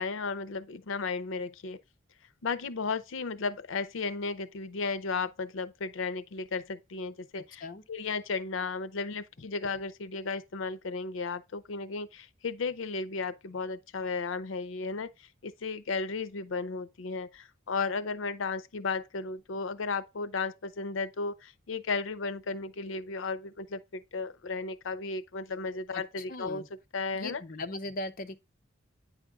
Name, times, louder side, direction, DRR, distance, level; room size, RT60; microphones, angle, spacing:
voice 1, 0.0-1.8 2.4-15.1 15.4-26.6 26.9-27.4, left 4 dB, 90° left, 0.6 m, -34 dB
voice 2, 26.3-26.7 27.1-28.4, left 2 dB, 45° left, 0.7 m, -38 dB
9.2 x 5.1 x 3.5 m
head